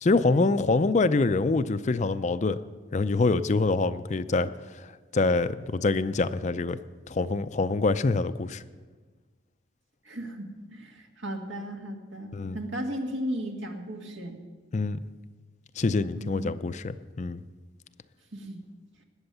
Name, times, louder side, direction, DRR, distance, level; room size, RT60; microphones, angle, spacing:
voice 1, 0.0-2.6 2.9-4.5 5.1-6.8 7.1-8.6 12.3-12.6 14.7-15.0 15.8-17.4, left 3 dB, 40° left, 12 dB, 0.5 m, -25 dB
voice 2, 10.1-14.4 16.1-16.5 18.3-18.6, equal, 80° right, 3 dB, 1.9 m, -36 dB
19.5 x 8.1 x 6.8 m, 1.4 s
head